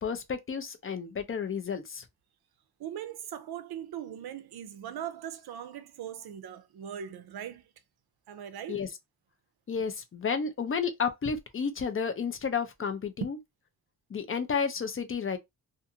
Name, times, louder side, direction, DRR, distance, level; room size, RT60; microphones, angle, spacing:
voice 1, 0.0-2.0 8.7-8.9 9.7-13.4 14.1-15.4, left 6 dB, 35° left, 0.5 m, -31 dB
voice 2, 2.8-7.7 8.3-8.8, right 9 dB, 70° right, 0.6 m, -40 dB
2.5 x 2.5 x 2.7 m
wide cardioid pair, 150°, 39 cm